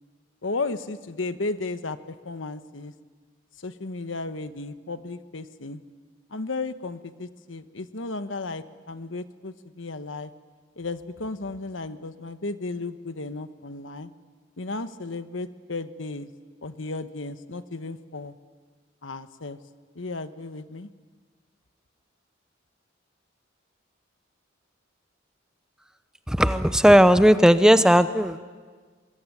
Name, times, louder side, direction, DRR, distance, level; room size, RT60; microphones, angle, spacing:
voice 1, 0.4-2.9 3.6-5.8 6.3-10.3 10.8-14.1 14.6-16.3 16.6-18.3 19.0-19.6 19.9-20.9, left 3 dB, 85° left, 11 dB, 1.2 m, -34 dB
voice 2, 26.3-28.4, equal, 5° right, 11 dB, 0.7 m, -16 dB
24.0 x 21.5 x 9.8 m, 1.5 s
head